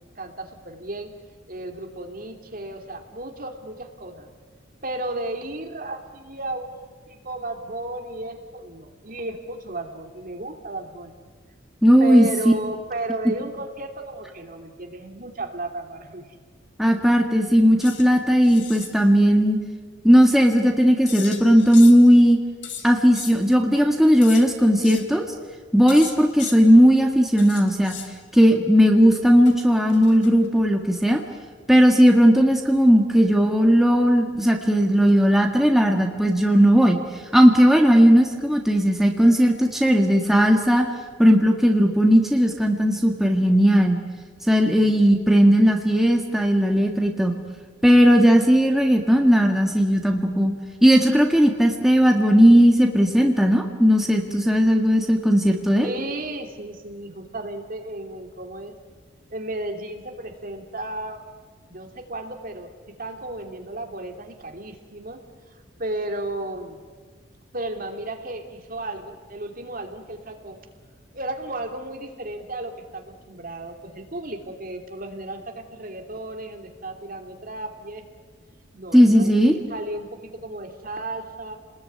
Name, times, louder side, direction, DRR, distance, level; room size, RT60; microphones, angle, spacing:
voice 1, 0.1-1.1 1.5-4.3 4.8-11.1 12.0-16.3 55.8-58.7 59.3-61.2 61.7-62.7 63.0-65.2 65.5-66.8 67.5-70.6 71.1-78.0 78.7-79.4 79.7-81.6, right 1 dB, 45° right, 4 dB, 3.0 m, -34 dB
voice 2, 11.8-12.5 16.8-19.6 20.0-22.4 22.8-25.3 25.7-27.9 28.3-31.2 31.7-37.0 37.3-40.9 41.2-44.0 44.5-47.4 47.8-50.5 50.8-55.9 78.9-79.6, equal, ahead, 2 dB, 1.8 m, -17 dB
sound 1, 17.8-18.1 18.4-18.9 21.1-22.1 22.6-23.3 24.2-24.4 24.8-25.1 25.9-26.6 27.4-28.1 29.5-30.5, left 9 dB, 65° left, 3.2 m, -37 dB
29.5 x 20.5 x 9.6 m, 1.5 s
head